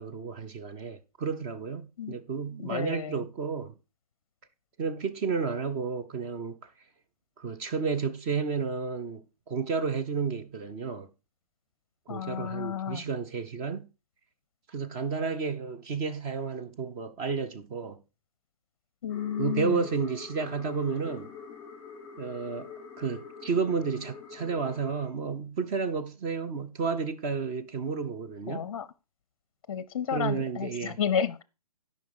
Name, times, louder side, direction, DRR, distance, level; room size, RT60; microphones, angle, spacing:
voice 1, 0.0-3.7 4.8-6.6 7.4-11.1 12.1-13.9 14.7-18.0 19.4-21.3 22.2-22.7 23.0-28.7 30.1-31.0, right 5 dB, 15° right, 0.5 m, -31 dB
voice 2, 2.6-3.2 12.1-13.0 19.0-19.8 28.5-28.9 29.7-31.4, left 8 dB, 40° left, 0.6 m, -31 dB
sound 1, 19.1-25.1, left 6 dB, 10° left, 1.6 m, -45 dB
12.5 x 5.4 x 4.8 m
figure-of-eight pair, 130°, 20 cm